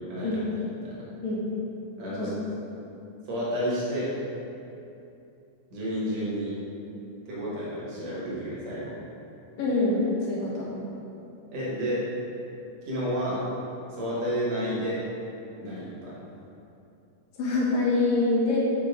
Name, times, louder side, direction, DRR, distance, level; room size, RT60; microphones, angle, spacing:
voice 1, 0.1-0.4 0.8-1.0 2.0-2.4 3.3-4.1 5.7-6.5 7.3-9.0 11.5-12.0 12.9-13.4 13.9-15.0 15.6-16.2, equal, 60° right, -8 dB, 2.5 m, -30 dB
voice 2, 9.6-10.7 17.4-18.6, left 2 dB, 65° left, -6 dB, 2.4 m, -25 dB
5.9 x 5.8 x 3.6 m, 2.8 s
omnidirectional pair, 3.7 m